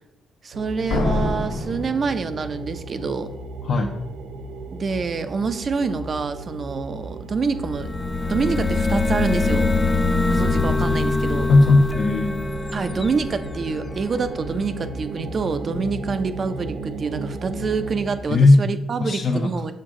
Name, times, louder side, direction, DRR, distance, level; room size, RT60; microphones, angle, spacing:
voice 1, 0.4-3.3 4.7-7.9 8.3-9.7 10.3-11.5 12.7-19.7, right 4 dB, 45° right, 10 dB, 0.6 m, -26 dB
sound 1, 0.5-18.2, right 2 dB, 90° right, 0.7 m, -35 dB
Slam, 0.9-2.8, left 2 dB, 90° left, 1.1 m, -26 dB
voice 2, 3.6-4.0 11.5-12.4 18.3-18.6 19.0-19.5, left 2 dB, 55° left, 1 dB, 0.7 m, -16 dB
sound 2, 7.6-14.3, left 3 dB, 20° left, 0.4 m, -23 dB
6.5 x 6.0 x 3.7 m, 0.89 s
cardioid pair, 90°, 0 cm